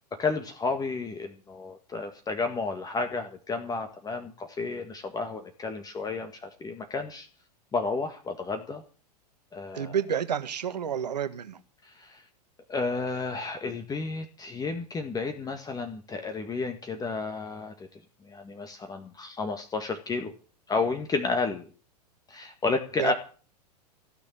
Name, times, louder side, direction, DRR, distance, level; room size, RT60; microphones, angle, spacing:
voice 1, 0.2-7.3 7.7-8.8 9.5-10.0 11.8-12.2 12.7-17.9 18.2-20.3 20.7-21.7 22.3-23.1, left 4 dB, 15° left, 1.8 m, -32 dB
voice 2, 9.7-11.6 23.0-23.1, right 8 dB, 75° right, 1.7 m, -29 dB
16.0 x 6.9 x 9.9 m
figure-of-eight pair, 100°, 21 cm